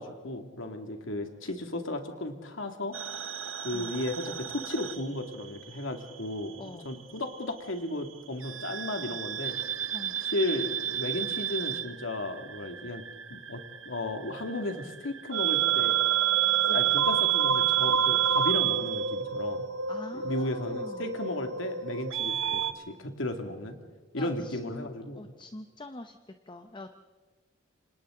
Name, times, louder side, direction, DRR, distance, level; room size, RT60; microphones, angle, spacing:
voice 1, 0.0-3.0 3.6-9.6 10.2-13.0 13.3-16.0 16.7-19.6 20.1-23.8 24.1-25.3, left 1 dB, 85° left, 5 dB, 2.4 m, -34 dB
sound 1, 2.9-5.8 6.0-7.2 8.4-22.7, right 9 dB, 90° right, 1.0 m, -29 dB
voice 2, 6.6-6.9 9.9-10.2 16.7-16.9 19.9-21.1 24.2-26.2 26.5-26.9, left 1 dB, 25° left, 8 dB, 0.8 m, -44 dB
29.5 x 26.0 x 3.9 m, 1.4 s
head